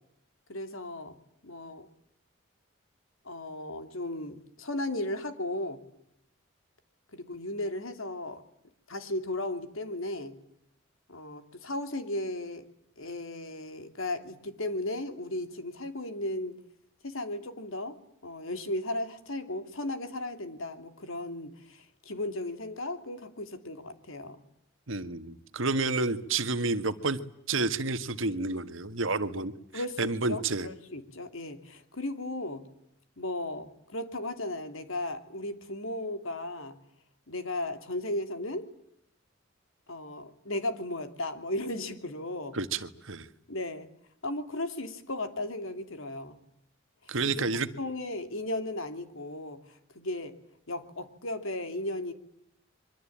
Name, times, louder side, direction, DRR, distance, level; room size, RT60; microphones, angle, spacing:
voice 1, 0.5-1.2 1.4-1.9 3.2-5.8 7.1-8.4 8.9-10.3 11.1-12.6 13.0-16.6 17.0-17.9 18.2-24.4 29.7-32.6 33.2-36.8 37.3-38.7 39.9-42.6 43.5-43.9 44.2-46.3 47.2-47.5 47.8-50.3 50.7-52.1, left 1 dB, 80° left, 8 dB, 3.0 m, -35 dB
voice 2, 24.9-27.2 27.5-29.5 30.0-30.7 42.5-43.3 47.1-47.7, right 3 dB, 75° right, 11 dB, 1.7 m, -30 dB
25.5 x 24.0 x 8.7 m, 0.73 s
head